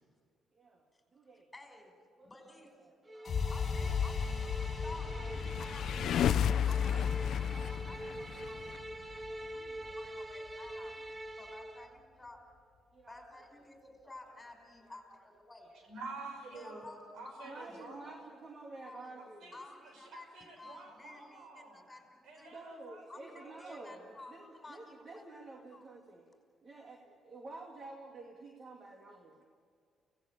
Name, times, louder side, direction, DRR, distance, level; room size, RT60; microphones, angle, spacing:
voice 1, 0.5-1.5 2.2-2.3 2.8-3.5 5.0-5.5 6.6-7.1 9.4-10.5 11.1-11.2 12.9-13.3 14.2-14.4 14.8-15.3 15.6-15.8 17.4-19.6 22.5-26.3 26.6-29.4, right 2 dB, 40° right, 1 dB, 2.5 m, -51 dB
voice 2, 1.5-1.9 2.2-2.9 3.5-5.2 5.6-5.9 6.2-8.8 9.2-11.0 11.4-12.4 13.1-15.7 16.5-17.9 18.2-18.3 18.8-19.2 19.5-22.5 23.1-25.2 25.7-25.8, left 2 dB, 15° left, 3 dB, 5.6 m, -53 dB
sound 1, 3.1-11.9, right 1 dB, 15° right, 1.1 m, -44 dB
sound 2, 3.3-11.2, left 6 dB, 50° left, 1.7 m, -38 dB
sound 3, 5.2-8.8, left 9 dB, 70° left, 0.6 m, -32 dB
voice 3, 15.8-18.1 19.2-21.8 22.2-24.0, right 3 dB, 75° right, 3 dB, 5.8 m, -49 dB
24.5 x 18.0 x 8.7 m, 2.1 s
cardioid pair, 90°, 0 cm